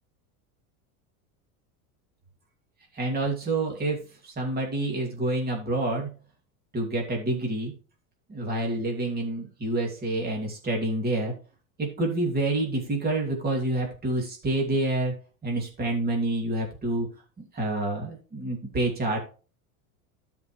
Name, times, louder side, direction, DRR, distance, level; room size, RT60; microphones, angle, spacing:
voice 1, 2.9-6.1 6.7-7.7 8.3-11.3 11.8-15.1 15.4-17.1 17.4-19.2, right 2 dB, 20° right, 0 dB, 2.7 m, -28 dB
13.5 x 5.3 x 3.2 m, 0.35 s
supercardioid pair, 130°, 43 cm